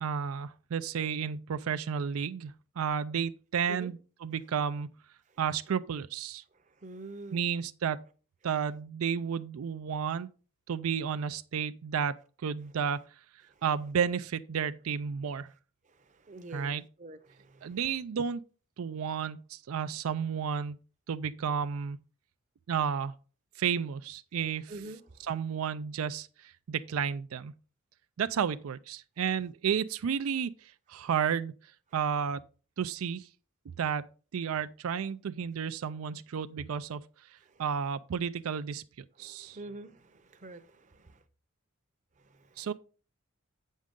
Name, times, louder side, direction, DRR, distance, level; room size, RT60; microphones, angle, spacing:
voice 1, 0.0-4.9 5.4-6.4 7.3-8.0 8.4-10.3 10.7-13.0 13.6-15.5 16.5-16.8 17.6-18.4 18.8-20.8 21.1-22.0 22.7-23.1 23.6-24.7 25.2-27.5 28.2-31.5 31.9-32.4 32.8-33.3 33.7-37.0 37.3-38.8 39.2-39.6 42.6-42.7, right 7 dB, 80° right, 0.4 m, -32 dB
voice 2, 6.7-7.5 13.5-13.6 15.9-17.8 24.7-25.3 31.0-31.1 37.4-37.6 39.2-41.2 42.2-42.7, right 2 dB, 35° right, 0.7 m, -47 dB
8.3 x 6.4 x 3.7 m
head